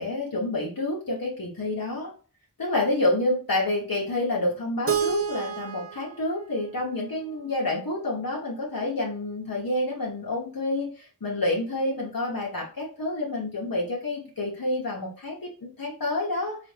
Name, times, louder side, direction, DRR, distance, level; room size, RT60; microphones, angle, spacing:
voice 1, 0.0-2.1 2.6-16.6, left 2 dB, 65° left, -3 dB, 1.0 m, -28 dB
Keyboard (musical), 4.9-7.8, right 8 dB, 40° right, 0.5 m, -31 dB
4.0 x 2.4 x 3.2 m, 0.39 s
wide cardioid pair, 40°, 37 cm